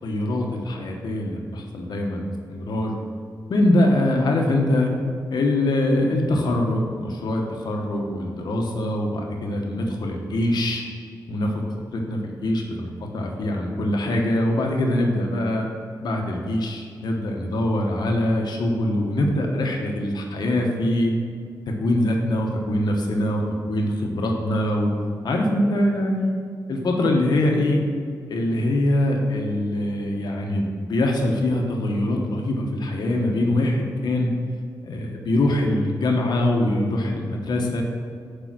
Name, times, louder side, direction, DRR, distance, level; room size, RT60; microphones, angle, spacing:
voice 1, 0.0-2.9 3.5-4.9 5.3-10.8 11.3-11.5 11.9-15.7 16.0-21.1 21.7-24.9 25.2-26.4 26.7-27.8 28.3-34.3 34.8-37.8, left 1 dB, 75° left, 1 dB, 1.0 m, -23 dB
6.8 x 5.1 x 6.0 m, 2.1 s
wide cardioid pair, 125°, 7 cm